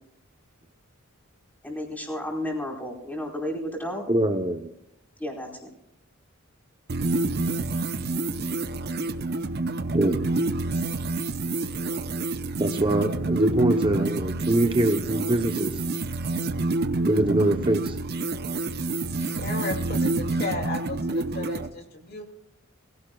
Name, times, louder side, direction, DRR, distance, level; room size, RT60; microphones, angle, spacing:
voice 1, 1.6-4.0 5.2-5.5, left 1 dB, 10° left, -1 dB, 4.6 m, -32 dB
voice 2, 4.1-4.7 9.9-10.2 12.6-15.8 17.1-18.0, right 1 dB, 25° right, 5 dB, 0.9 m, -24 dB
sound 1, 6.9-21.7, right 2 dB, 50° right, 0.8 m, -28 dB
voice 3, 19.2-22.2, left 2 dB, 50° left, 2 dB, 2.6 m, -34 dB
23.0 x 16.5 x 2.4 m, 0.81 s
head